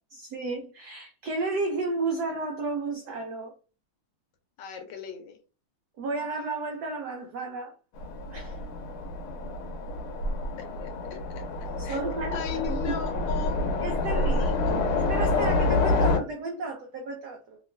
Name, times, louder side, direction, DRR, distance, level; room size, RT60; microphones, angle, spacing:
voice 1, 0.1-3.5 6.0-7.8 8.3-8.6 11.8-13.0 13.8-17.6, right 3 dB, 80° right, 0.8 m, -33 dB
voice 2, 4.6-5.4 10.6-11.2 11.8-13.6 14.4-14.7, left 8 dB, 70° left, 1.2 m, -37 dB
Train, 8.0-16.2, left 2 dB, 90° left, 1.5 m, -27 dB
2.9 x 2.9 x 2.5 m
omnidirectional pair, 2.3 m